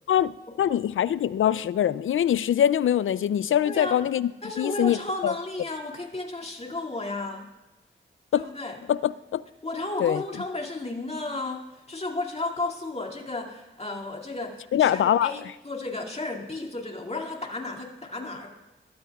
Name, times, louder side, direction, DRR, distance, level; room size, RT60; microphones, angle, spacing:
voice 1, 0.1-4.3 4.6-5.3 8.3-8.4 8.9-9.4 10.0-10.2 14.7-15.3, left 10 dB, 85° left, 0.4 m, -23 dB
voice 2, 3.6-4.0 4.4-7.5 8.3-8.8 9.6-18.5, left 2 dB, 30° left, 2.4 m, -33 dB
21.0 x 13.0 x 2.4 m
cardioid pair, 60°, 20 cm